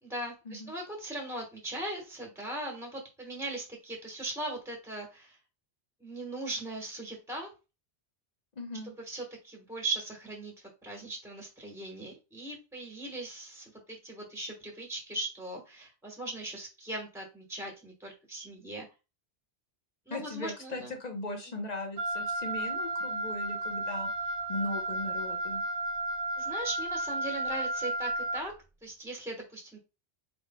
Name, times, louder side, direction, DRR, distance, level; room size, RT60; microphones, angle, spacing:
voice 1, 0.0-5.4 6.0-7.5 8.8-10.5 10.8-18.8 20.1-20.9 26.4-28.5 28.8-29.8, right 2 dB, 5° right, 0 dB, 1.2 m, -39 dB
voice 2, 8.6-8.9 20.1-24.1 24.5-25.6, left 2 dB, 40° left, 4 dB, 0.9 m, -38 dB
Wind instrument woodwind instrument, 22.0-28.4, right 2 dB, 40° right, 0.8 m, -33 dB
4.6 x 4.1 x 2.2 m, 0.29 s
omnidirectional pair, 1.1 m